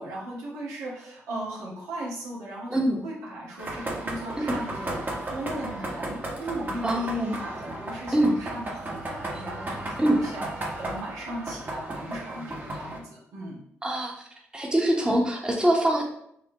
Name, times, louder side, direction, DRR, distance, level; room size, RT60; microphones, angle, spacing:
voice 1, 0.0-10.5 10.7-13.6, right 1 dB, 85° right, -5 dB, 1.6 m, -37 dB
sound 1, 3.6-13.0, right 1 dB, 35° right, 1.2 m, -35 dB
voice 2, 6.8-7.4 8.1-8.3 10.0-10.2 13.8-14.1 14.5-16.0, right 1 dB, 15° right, 0 dB, 1.0 m, -23 dB
4.8 x 2.9 x 2.9 m, 0.73 s
supercardioid pair, 60°, 5 cm